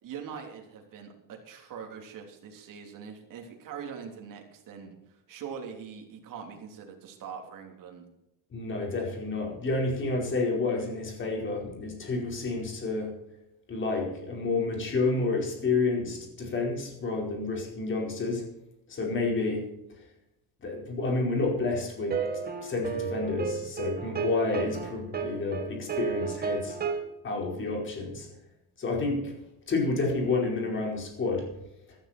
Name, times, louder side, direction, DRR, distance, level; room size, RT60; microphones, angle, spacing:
voice 1, 0.0-8.0, right 7 dB, 45° right, 2 dB, 3.4 m, -42 dB
voice 2, 8.5-13.1 13.7-18.4 18.9-19.7 20.6-22.2 22.6-26.8 27.2-28.3 28.8-29.3 29.7-31.5, left 3 dB, 25° left, 1 dB, 4.7 m, -29 dB
sound 1, 22.1-27.0, right 5 dB, 20° right, 1.8 m, -32 dB
14.5 x 13.0 x 4.4 m, 0.85 s
cardioid pair, 160°, 44 cm